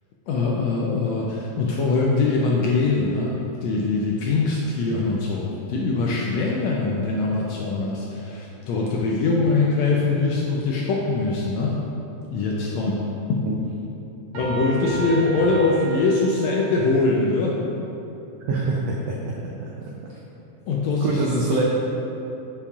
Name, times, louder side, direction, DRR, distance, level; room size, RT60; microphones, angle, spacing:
voice 1, 0.3-11.7 12.3-13.4 14.3-17.6 20.7-21.4, left 3 dB, 80° left, -3 dB, 1.6 m, -23 dB
Piano, 14.3-16.8, equal, 65° right, 2.3 m, -31 dB
voice 2, 18.5-19.3 20.0-20.1 21.0-21.6, right 3 dB, 90° right, -2 dB, 1.4 m, -25 dB
7.0 x 6.9 x 2.4 m, 2.9 s
omnidirectional pair, 3.6 m